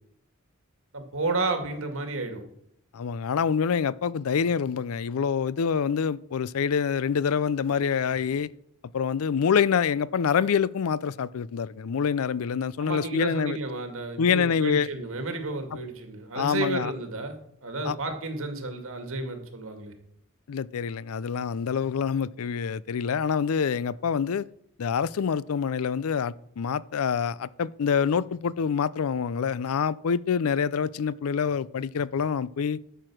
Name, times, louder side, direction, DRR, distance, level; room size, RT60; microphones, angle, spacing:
voice 1, 0.9-2.4 12.8-17.4 17.6-19.9, right 3 dB, 65° right, 2.2 m, -32 dB
voice 2, 2.9-8.5 8.9-13.6 14.2-14.9 16.4-16.9 17.9-18.0 20.5-24.5 24.8-32.8, left 6 dB, 70° left, 0.4 m, -26 dB
12.0 x 6.9 x 6.2 m
head